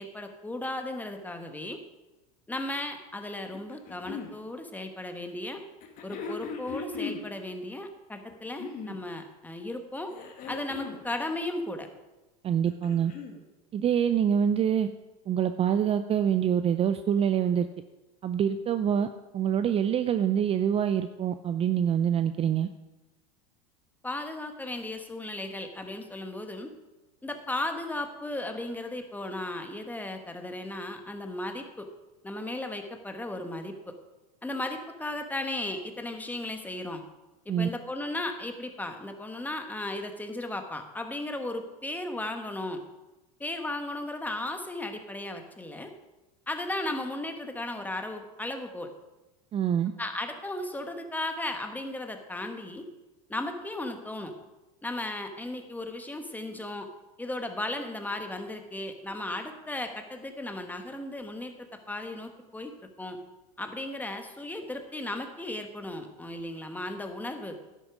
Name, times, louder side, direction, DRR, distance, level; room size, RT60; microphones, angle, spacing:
voice 1, 0.0-1.8 2.5-5.6 6.0-10.1 10.5-11.9 24.0-26.7 27.2-31.9 32.2-33.9 34.4-37.0 37.4-42.8 43.4-45.9 46.5-48.9 50.0-52.9 53.3-54.3 54.8-56.9 57.2-62.7 63.0-63.2 63.6-67.6, left 1 dB, 10° left, 6 dB, 1.3 m, -35 dB
sound 1, 3.5-4.3 5.8-7.3 8.3-9.0 10.1-11.0 12.5-13.4 14.5-14.6, left 5 dB, 45° left, 1.8 m, -38 dB
voice 2, 12.4-13.1 13.7-14.9 15.3-17.7 18.2-22.7 37.5-37.7 49.5-49.9, right 8 dB, 30° right, 11 dB, 0.5 m, -25 dB
11.0 x 8.3 x 5.0 m, 1.1 s
hypercardioid pair, 95°, 19 cm